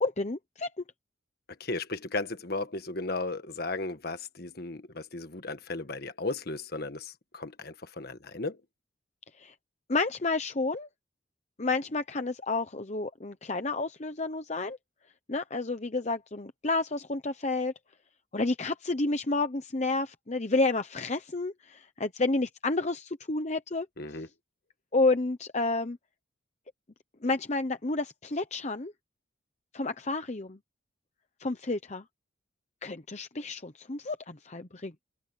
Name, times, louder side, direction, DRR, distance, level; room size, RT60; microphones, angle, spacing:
voice 1, 0.0-0.8 9.4-9.5 9.9-10.9 11.6-14.8 15.3-17.7 18.3-23.9 24.9-26.0 27.2-28.9 29.7-30.6 31.4-32.0 32.8-34.9, left 3 dB, 35° left, 0.9 m, -30 dB
voice 2, 1.6-8.6 24.0-24.3, left 3 dB, 50° left, 1.6 m, -35 dB
head